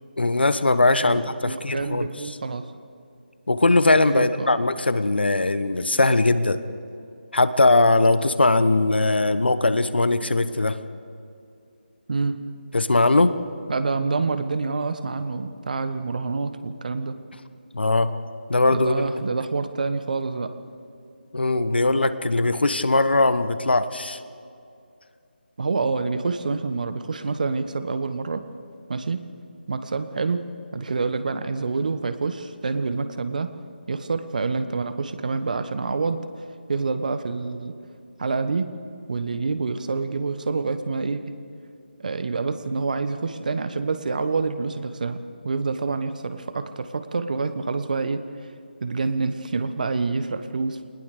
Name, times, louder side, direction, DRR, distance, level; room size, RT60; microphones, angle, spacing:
voice 1, 0.2-2.4 3.5-6.6 7.3-10.8 12.7-13.4 17.7-18.1 18.5-19.0 21.3-24.2, left 2 dB, 75° left, 12 dB, 1.3 m, -20 dB
voice 2, 1.4-2.7 4.0-4.6 12.1-12.4 13.7-17.2 18.7-20.5 25.6-28.4 28.9-29.2 29.7-30.4 30.7-33.5 33.9-37.7 38.2-38.7 39.1-41.3 42.0-48.5 48.8-50.8, right 4 dB, 50° right, 10 dB, 1.4 m, -27 dB
22.5 x 20.0 x 6.8 m, 2.5 s
figure-of-eight pair, 160°, 6 cm